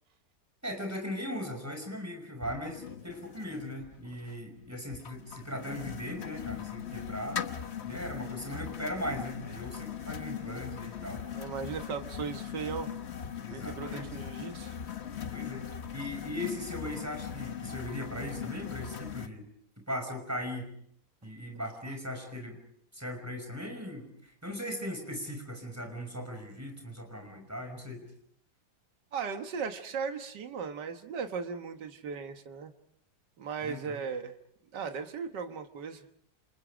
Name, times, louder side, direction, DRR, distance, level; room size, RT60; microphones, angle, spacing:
voice 1, 0.6-7.5 7.8-11.6 13.4-14.1 15.3-15.7 15.9-19.5 19.8-20.7 21.2-22.6 22.9-28.1 33.6-34.0, equal, 10° right, 4 dB, 5.7 m, -39 dB
sound 1, 2.4-19.3, left 8 dB, 45° left, 1.2 m, -40 dB
voice 2, 11.3-12.9 13.5-14.7 29.1-32.7 33.4-34.3 34.7-36.0, right 6 dB, 85° right, 6 dB, 2.0 m, -37 dB
29.0 x 28.5 x 5.1 m, 0.66 s
omnidirectional pair, 1.8 m